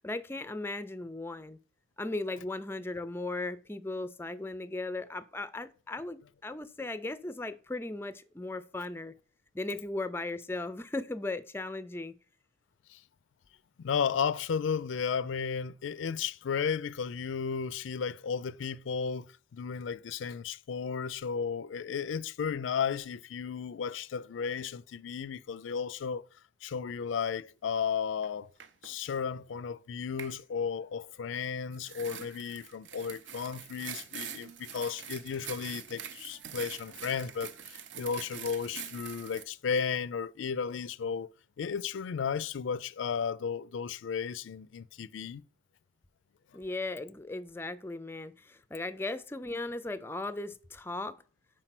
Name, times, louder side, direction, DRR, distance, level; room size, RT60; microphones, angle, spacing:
voice 1, 0.0-1.6 2.0-9.1 9.5-12.1 46.5-51.2, left 2 dB, 10° left, 0.4 m, -37 dB
voice 2, 13.8-19.3 19.5-26.2 26.6-28.5 28.8-41.3 41.6-45.4, left 6 dB, 80° left, 0.4 m, -34 dB
sound 1, 28.2-28.3 28.6-28.9 30.2-30.4 31.7-39.4, right 9 dB, 70° right, 0.5 m, -44 dB
4.8 x 4.4 x 5.8 m
head